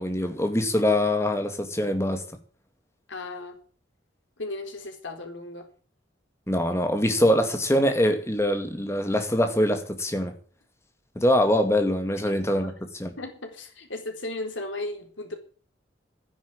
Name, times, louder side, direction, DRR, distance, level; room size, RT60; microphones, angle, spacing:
voice 1, 0.0-2.2 6.5-10.4 11.2-12.7 13.0-13.1, left 1 dB, 15° left, 2.2 m, -23 dB
voice 2, 3.1-3.6 4.4-5.7 12.3-12.4 13.2-15.4, left 2 dB, 90° left, 4.2 m, -35 dB
12.5 x 10.5 x 8.8 m
head